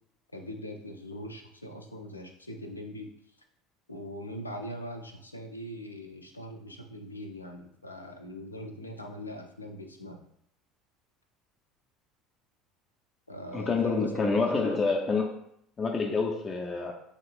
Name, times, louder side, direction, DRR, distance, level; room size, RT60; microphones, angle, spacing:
voice 1, 0.3-3.1 3.9-10.2 13.3-14.9, equal, 90° left, 4 dB, 0.4 m, -41 dB
voice 2, 13.5-15.3 15.8-16.9, left 4 dB, 25° left, 1 dB, 0.4 m, -27 dB
3.5 x 2.4 x 3.4 m, 0.71 s
figure-of-eight pair, 65°, 0 cm